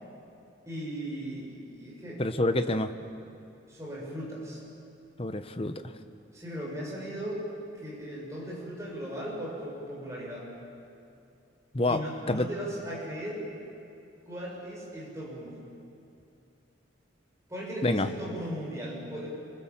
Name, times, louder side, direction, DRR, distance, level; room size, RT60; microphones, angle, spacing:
voice 1, 0.7-2.2 3.7-4.6 6.3-7.4 7.7-10.5 11.9-13.4 14.3-15.6 17.5-19.3, equal, 15° right, -5 dB, 7.1 m, -37 dB
voice 2, 2.2-2.9 5.2-5.8 11.7-12.0 12.3-12.5 17.8-18.1, left 2 dB, 30° left, 9 dB, 0.9 m, -27 dB
28.0 x 20.0 x 7.4 m, 2.6 s
head